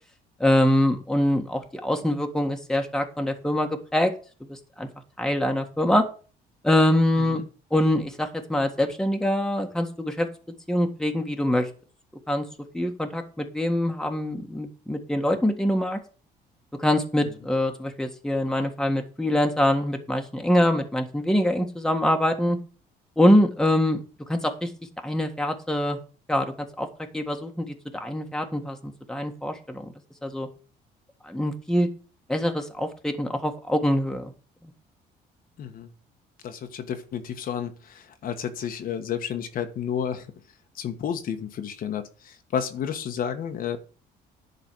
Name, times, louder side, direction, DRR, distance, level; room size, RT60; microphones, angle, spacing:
voice 1, 0.4-4.1 4.5-4.9 5.2-6.1 6.6-7.4 7.7-10.3 10.7-11.7 12.3-12.4 12.7-16.0 16.8-22.6 23.2-24.0 24.3-24.7 25.0-26.0 26.3-26.9 27.1-29.9 30.2-30.5 31.3-31.9 32.3-34.3, left 1 dB, 5° left, 1.6 m, -24 dB
voice 2, 35.6-35.9 36.4-40.3 40.7-43.8, left 8 dB, 55° left, 1.3 m, -31 dB
11.0 x 4.1 x 7.8 m
cardioid pair, 110°, 17 cm